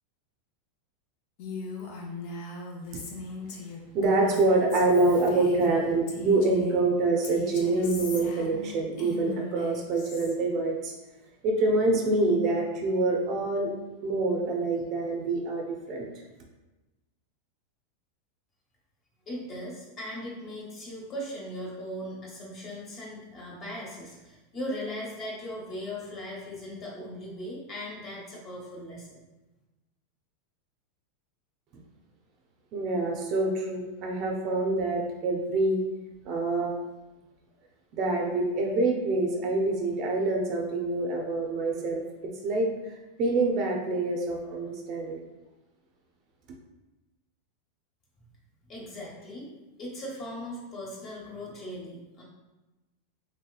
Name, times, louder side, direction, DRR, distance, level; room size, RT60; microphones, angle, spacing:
Female speech woman speaking, 1.4-6.8 7.2-10.3, left 3 dB, 60° left, 0.6 m, -40 dB
voice 1, 3.9-10.9 11.4-13.7 14.0-16.1 32.7-35.8 36.2-36.7 37.9-45.2, right 2 dB, 45° right, 1 dB, 0.5 m, -26 dB
voice 2, 19.3-29.2 48.7-49.5 49.8-52.2, equal, 30° left, -4 dB, 1.1 m, -38 dB
3.2 x 2.8 x 2.3 m, 1.1 s
supercardioid pair, 130°, 0 cm